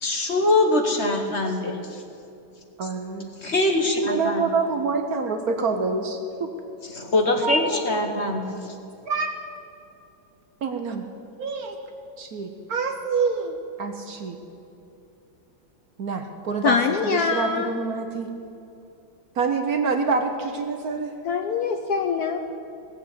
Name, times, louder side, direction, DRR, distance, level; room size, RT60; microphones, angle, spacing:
voice 1, 0.0-2.0 3.4-4.5 6.9-8.7, left 2 dB, 40° left, 3 dB, 1.3 m, -23 dB
voice 2, 2.8-3.3 4.0-6.5 7.4-7.8 9.1-9.3 10.6-11.1 11.4-11.8 12.2-14.4 16.0-16.8 17.0-18.3 19.4-21.2, right 4 dB, 60° right, 5 dB, 1.2 m, -26 dB
voice 3, 16.6-17.7 21.2-22.4, left 5 dB, 65° left, 5 dB, 1.0 m, -23 dB
18.0 x 7.3 x 8.5 m, 2.7 s
omnidirectional pair, 2.1 m